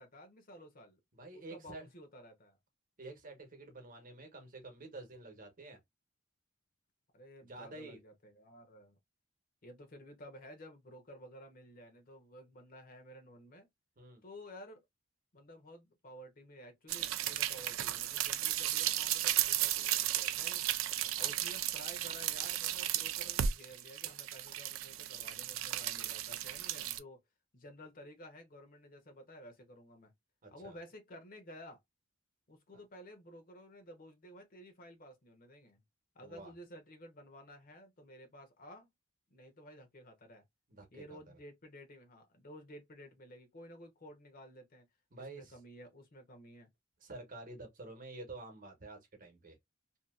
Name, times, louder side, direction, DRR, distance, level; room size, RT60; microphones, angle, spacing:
voice 1, 0.0-1.0 1.3-2.6 7.1-9.0 9.6-13.7 14.2-14.8 15.3-20.6 21.2-27.2 27.5-30.1 30.5-31.8 32.5-35.8 36.1-38.9 39.3-40.4 40.9-44.9 45.3-46.7, equal, 45° left, 0.8 m, -53 dB
voice 2, 1.2-1.9 3.0-5.8 7.5-8.0 14.0-14.2 21.0-21.3 30.4-30.8 32.7-32.8 36.2-36.5 40.7-41.4 45.1-45.6 47.0-49.6, right 2 dB, 40° right, 1.0 m, -49 dB
sound 1, 16.9-27.0, right 12 dB, 70° right, 0.4 m, -34 dB
2.7 x 2.4 x 2.3 m
head